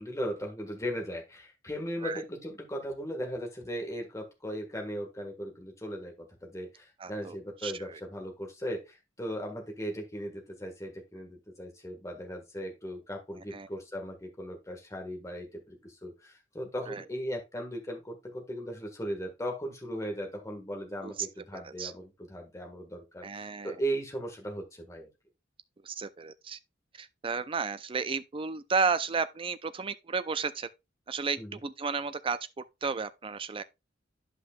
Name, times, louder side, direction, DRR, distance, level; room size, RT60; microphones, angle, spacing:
voice 1, 0.0-25.1 31.4-31.6, equal, 15° left, 1.6 m, -37 dB
voice 2, 7.0-7.4 7.6-8.0 13.5-13.7 16.9-17.0 21.0-21.1 21.5-21.9 23.2-23.7 25.8-26.6 27.0-30.7 31.1-32.4 32.8-33.6, right 5 dB, 30° right, 0.5 m, -33 dB
11.0 x 5.4 x 2.3 m
head